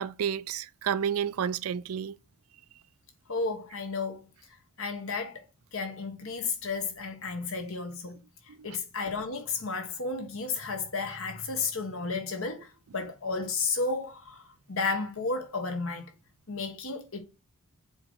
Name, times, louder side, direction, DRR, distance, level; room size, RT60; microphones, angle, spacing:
voice 1, 0.0-2.2 8.5-8.8, right 8 dB, 90° right, 0.4 m, -31 dB
voice 2, 3.3-4.3 4.8-5.4 5.7-8.2 8.6-16.1 16.5-17.2, left 4 dB, 75° left, 1.5 m, -33 dB
7.4 x 3.1 x 4.7 m
head